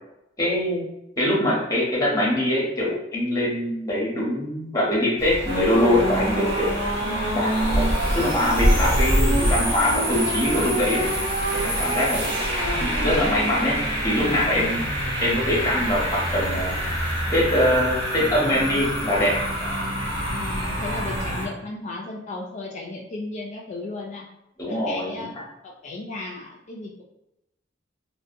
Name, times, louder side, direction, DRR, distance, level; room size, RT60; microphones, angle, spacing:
voice 1, 0.4-0.9 1.2-6.7 7.3-7.9 8.1-11.0 11.5-12.3 12.7-13.8 14.0-14.9 15.2-16.7 17.3-19.4 24.6-25.1, left 1 dB, 20° left, -5 dB, 0.7 m, -23 dB
sound 1, 5.2-17.2, equal, 60° right, 0.4 m, -28 dB
sound 2, 5.5-21.5, right 1 dB, 25° right, 0.7 m, -27 dB
voice 2, 7.0-7.5 10.6-11.3 12.2-12.4 20.4-24.3 24.7-25.3 25.6-27.0, left 2 dB, 40° left, -1 dB, 0.3 m, -35 dB
2.6 x 2.1 x 2.4 m, 0.86 s
head